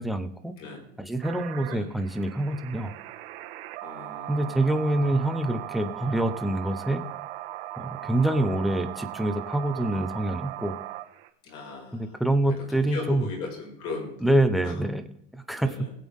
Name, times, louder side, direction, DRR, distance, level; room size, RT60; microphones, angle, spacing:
voice 1, 0.0-0.5 1.0-2.9 4.3-7.0 7.8-10.7 11.9-13.3 14.2-15.1 15.3-15.7, right 1 dB, ahead, 7 dB, 0.8 m, -26 dB
sound 1, 1.2-11.3, right 15 dB, 75° right, 1.5 m, -39 dB
voice 2, 3.8-4.6 11.4-12.2 12.7-14.1 14.6-14.8 15.6-15.9, left 4 dB, 50° left, 0 dB, 4.9 m, -38 dB
20.5 x 8.3 x 3.6 m, 0.73 s
supercardioid pair, 160°, 30 cm